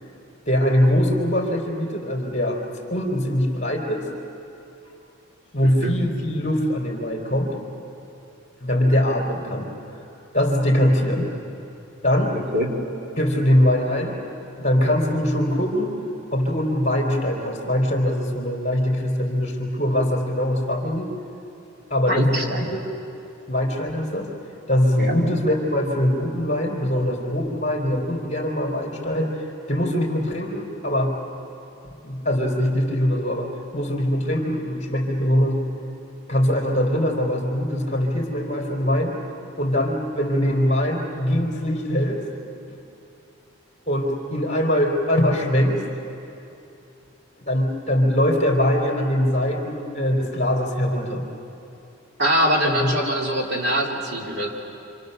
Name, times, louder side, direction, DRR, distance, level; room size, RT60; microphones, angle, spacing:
voice 1, 0.5-2.6 2.9-4.1 5.5-7.6 8.6-9.7 10.3-11.3 12.0-12.4 13.2-14.2 14.6-16.0 16.3-21.1 21.9-22.8 23.5-24.3 24.7-29.3 29.7-31.2 32.0-35.6 36.3-39.1 39.6-42.2 43.9-45.8 47.5-51.2 52.6-52.9, equal, 30° left, -1 dB, 3.8 m, -22 dB
voice 2, 5.6-6.0 12.5-12.8 22.1-22.7 25.0-25.1 52.2-54.5, equal, 50° right, -1 dB, 2.9 m, -23 dB
28.0 x 27.5 x 6.7 m, 2.7 s
head